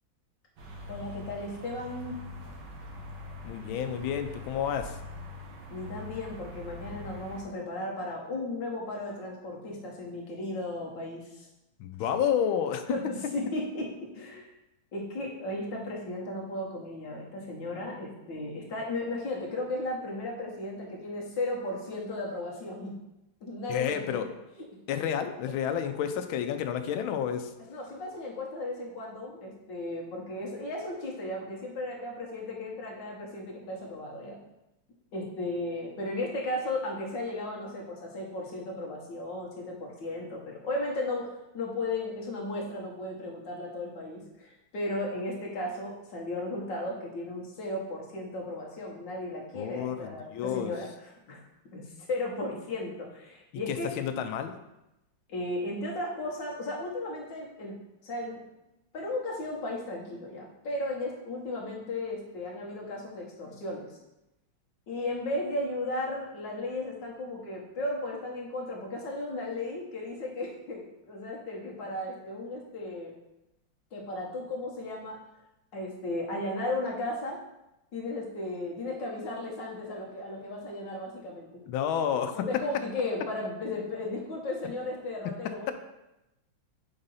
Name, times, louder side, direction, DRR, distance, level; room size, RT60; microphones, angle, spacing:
sound 1, 0.6-7.4, left 2 dB, 65° right, 1.7 m, -43 dB
voice 1, 0.9-2.1 5.7-11.5 12.0-12.1 12.9-13.9 14.1-14.5 14.9-22.9 23.4-24.2 24.6-24.7 27.7-34.4 35.1-41.3 41.5-51.5 51.7-53.9 55.3-57.8 58.0-58.4 58.9-64.0 64.9-73.1 73.9-75.2 75.7-77.4 77.9-81.5 82.4-85.7, left 2 dB, 65° left, -2 dB, 1.9 m, -35 dB
voice 2, 3.4-4.9 11.8-12.8 23.7-24.3 24.9-27.5 49.5-50.7 53.7-54.6 81.7-82.5, left 8 dB, 85° left, 8 dB, 1.4 m, -30 dB
5.3 x 4.0 x 5.5 m, 0.92 s
omnidirectional pair, 2.2 m